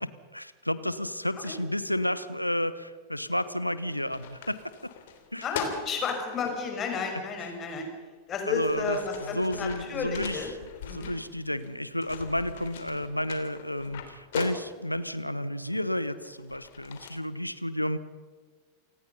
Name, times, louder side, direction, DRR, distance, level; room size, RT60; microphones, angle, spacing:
voice 1, 0.0-4.9 5.3-5.4 7.1-7.2 8.5-18.0, left 1 dB, 90° left, 15 dB, 1.1 m, -31 dB
sound 1, 3.6-3.7 3.9-6.6 7.7-7.8 8.4-11.7 12.0-15.0 15.6-17.1, left 7 dB, 55° left, 3.2 m, -41 dB
voice 2, 5.4-7.9 8.3-10.5 10.9-11.1, left 4 dB, 30° left, 3 dB, 6.0 m, -32 dB
28.5 x 18.5 x 5.6 m, 1.4 s
figure-of-eight pair, 90°, 0 cm